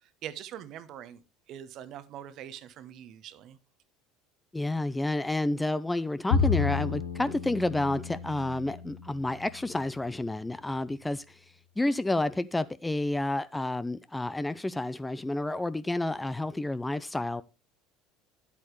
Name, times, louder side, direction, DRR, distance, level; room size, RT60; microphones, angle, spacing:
voice 1, 0.2-1.2 1.5-3.6, right 10 dB, 55° right, 1.0 m, -43 dB
voice 2, 4.5-11.3 11.8-17.4, left 2 dB, 10° left, 0.6 m, -30 dB
Bowed string instrument, 6.3-9.7, left 6 dB, 80° left, 1.1 m, -31 dB
10.5 x 8.3 x 3.2 m
figure-of-eight pair, 65°, 0 cm